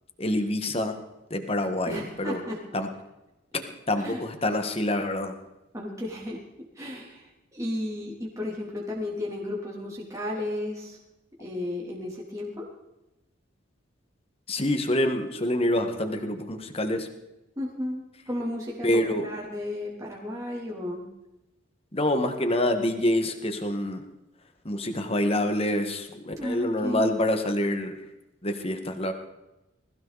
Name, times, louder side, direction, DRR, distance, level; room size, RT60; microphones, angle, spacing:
voice 1, 0.2-1.0 1.3-2.4 2.7-2.9 3.5-5.3 14.5-17.1 18.8-19.3 21.9-24.0 24.7-28.0 28.4-29.1, left 1 dB, 30° left, 6 dB, 1.8 m, -26 dB
voice 2, 1.9-2.6 4.0-4.2 5.7-6.4 6.7-11.0 11.4-12.6 17.6-21.0 26.4-27.1, left 1 dB, 15° right, -4 dB, 3.3 m, -33 dB
21.0 x 16.0 x 4.2 m, 0.95 s
head